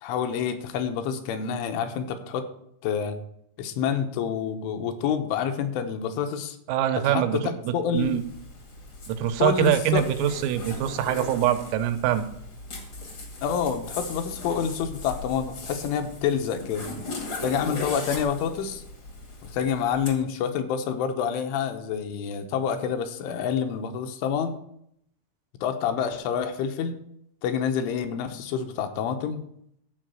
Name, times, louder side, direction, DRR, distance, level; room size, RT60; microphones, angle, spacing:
voice 1, 0.0-2.5 2.8-3.2 3.6-6.6 7.0-8.2 9.4-10.1 13.4-16.9 17.4-18.8 19.4-24.6 25.6-26.9 27.4-29.4, left 7 dB, 75° left, 6 dB, 3.3 m, -28 dB
voice 2, 6.7-8.2 9.1-12.3, right 10 dB, 90° right, 8 dB, 3.5 m, -24 dB
Zipper (clothing), 7.9-20.1, left 2 dB, 55° left, 1.2 m, -39 dB
13.5 x 4.9 x 7.7 m, 0.73 s
omnidirectional pair, 5.8 m